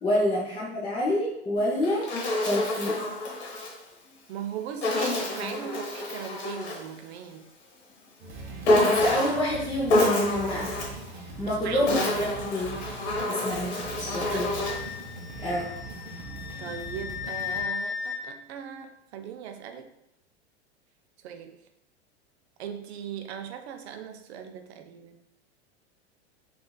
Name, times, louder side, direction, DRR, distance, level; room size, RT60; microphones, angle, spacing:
voice 1, 0.0-2.1 2.4-3.0 5.4-5.7 8.8-10.7 11.4-12.8 13.3-14.5 15.4-15.7, left 1 dB, 15° left, -5 dB, 0.5 m, -28 dB
Insect, 1.6-3.8 4.8-6.9 8.6-9.5 9.9-11.0 11.7-14.9, left 1 dB, 75° left, 1.0 m, -27 dB
voice 2, 4.3-7.5 11.5-11.9 14.3-14.5 15.4-15.6 16.6-19.9 21.2-21.6 22.6-25.2, right 8 dB, 75° right, 6 dB, 0.5 m, -39 dB
sound 1, 8.2-17.6, right 3 dB, 30° right, 0.6 m, -41 dB
Wind instrument woodwind instrument, 14.6-18.2, left 7 dB, 50° left, 1.0 m, -36 dB
3.8 x 2.4 x 2.2 m, 0.82 s
hypercardioid pair, 110°, 33 cm